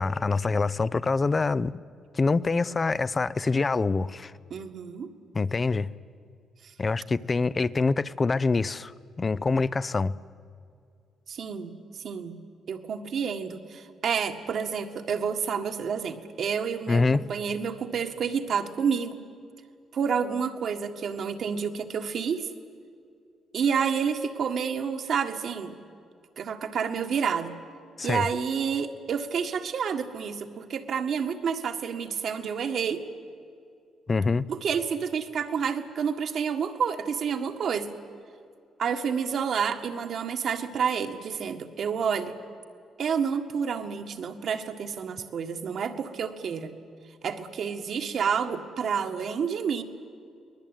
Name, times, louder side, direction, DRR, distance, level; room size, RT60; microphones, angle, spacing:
voice 1, 0.0-1.7 2.1-4.3 5.3-5.9 6.8-10.2 16.9-17.2 28.0-28.3 34.1-34.5, left 3 dB, 30° left, 17 dB, 0.6 m, -25 dB
voice 2, 4.5-5.1 6.6-6.7 11.3-11.7 12.0-12.4 12.7-19.1 19.9-22.5 23.5-25.8 26.4-27.6 28.0-33.0 34.5-37.9 38.8-42.4 43.0-46.7 47.2-49.8, right 6 dB, 60° right, 6 dB, 1.7 m, -29 dB
23.5 x 19.5 x 9.1 m, 2.3 s
cardioid pair, 90°, 0 cm